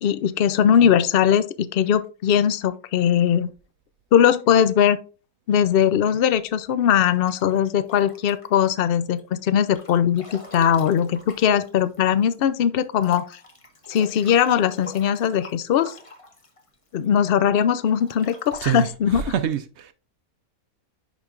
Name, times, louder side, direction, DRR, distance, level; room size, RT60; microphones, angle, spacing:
voice 1, 0.0-3.5 4.1-5.0 5.5-13.3 13.9-15.9 16.9-19.2, left 9 dB, 80° left, 0.5 m, -20 dB
Breathing / Bathtub (filling or washing) / Splash splatter, 7.1-8.7 9.2-12.4 12.6-12.7 13.0-17.2 17.7-18.6, left 2 dB, 25° left, 0.8 m, -44 dB
voice 2, 18.6-19.9, right 10 dB, 65° right, 0.7 m, -26 dB
10.5 x 5.0 x 2.5 m
omnidirectional pair, 1.6 m